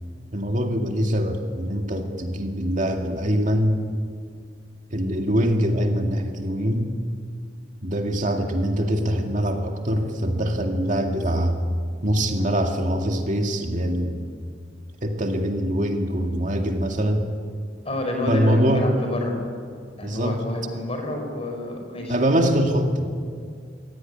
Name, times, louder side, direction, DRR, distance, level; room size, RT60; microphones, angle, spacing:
voice 1, 0.3-3.8 4.9-6.9 7.8-11.6 12.0-14.2 15.0-17.3 18.3-18.9 20.0-20.4 22.1-23.1, equal, 45° right, 3 dB, 2.1 m, -23 dB
voice 2, 17.9-19.4 20.0-22.2, left 1 dB, 35° left, 3 dB, 5.2 m, -28 dB
24.5 x 17.0 x 10.0 m, 2.2 s
head